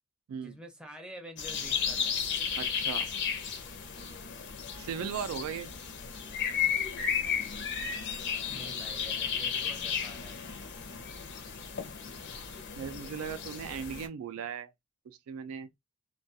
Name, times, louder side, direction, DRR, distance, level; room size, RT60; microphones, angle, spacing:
voice 1, 0.4-2.4 8.5-10.5, equal, 5° right, 0.5 m, -48 dB
sound 1, 1.4-14.1, left 7 dB, 50° left, 0.5 m, -34 dB
voice 2, 2.6-3.1 4.8-5.7 12.8-14.7 15.1-15.7, right 7 dB, 70° right, 0.3 m, -37 dB
2.2 x 2.2 x 2.6 m
head